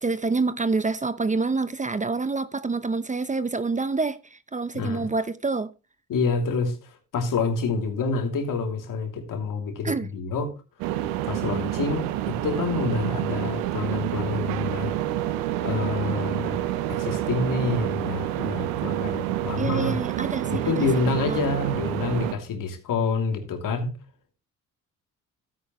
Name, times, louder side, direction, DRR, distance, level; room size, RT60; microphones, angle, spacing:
voice 1, 0.0-5.7 9.8-10.1 19.6-20.9 21.3-21.4, right 3 dB, 20° right, 0.8 m, -27 dB
voice 2, 4.7-5.1 6.1-10.5 11.2-15.0 15.6-20.0 20.4-23.9, left 4 dB, 65° left, 2.9 m, -27 dB
sound 1, 10.8-22.3, right 13 dB, 90° right, 1.0 m, -28 dB
12.5 x 9.5 x 3.0 m
supercardioid pair, 65°, 35 cm